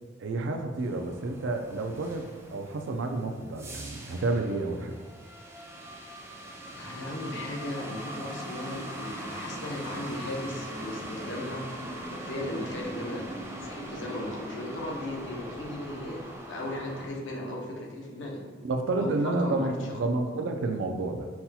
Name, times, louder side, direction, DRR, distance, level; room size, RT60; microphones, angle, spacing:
voice 1, 0.2-5.0 18.6-21.3, right 2 dB, 85° right, 4 dB, 0.4 m, -30 dB
sound 1, 0.8-17.1, right 1 dB, 15° right, 0.5 m, -41 dB
voice 2, 6.7-11.6 12.1-13.3 13.6-18.4 18.9-20.0, left 1 dB, 80° left, -1 dB, 0.7 m, -37 dB
5.7 x 2.8 x 2.3 m, 1.4 s
head